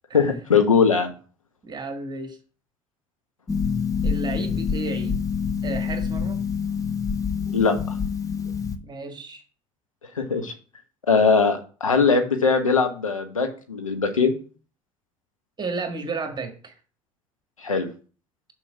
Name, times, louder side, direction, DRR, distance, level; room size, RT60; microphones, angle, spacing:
voice 1, 0.1-1.1 7.5-8.0 10.1-10.5 11.1-14.4 17.6-17.9, left 5 dB, 85° left, 5 dB, 1.2 m, -20 dB
voice 2, 1.6-2.4 4.0-5.2 5.6-6.4 8.8-9.4 15.6-16.7, right 3 dB, 25° right, 6 dB, 1.7 m, -32 dB
Harp, 3.5-8.8, left 6 dB, 20° left, 0.9 m, -26 dB
6.7 x 5.3 x 5.8 m, 0.38 s
figure-of-eight pair, 60°, 17 cm